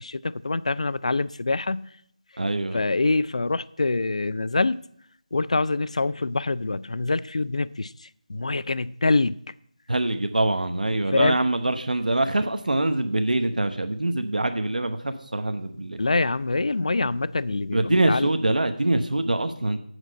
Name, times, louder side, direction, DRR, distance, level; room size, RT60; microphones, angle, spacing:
voice 1, 0.0-1.9 2.7-4.8 5.3-9.4 11.1-11.4 16.0-18.3, left 3 dB, 55° left, 0.4 m, -25 dB
voice 2, 2.4-2.8 9.9-16.0 17.7-19.8, right 2 dB, 85° right, 1.0 m, -24 dB
8.0 x 5.2 x 7.6 m
figure-of-eight pair, 175°, 4 cm